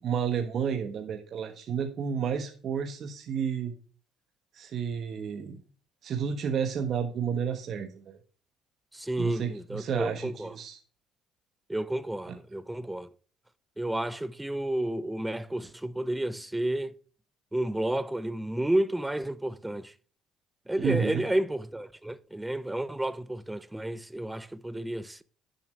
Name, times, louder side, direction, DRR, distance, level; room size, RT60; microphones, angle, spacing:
voice 1, 0.0-3.7 4.5-5.6 6.0-8.2 9.2-10.8 12.3-12.4 20.8-21.2, right 7 dB, 55° right, 1.3 m, -31 dB
voice 2, 8.9-10.5 11.7-13.1 13.8-16.9 17.5-19.9 20.7-25.2, right 1 dB, 10° right, 0.7 m, -31 dB
10.0 x 7.0 x 3.3 m
supercardioid pair, 90°, 0 cm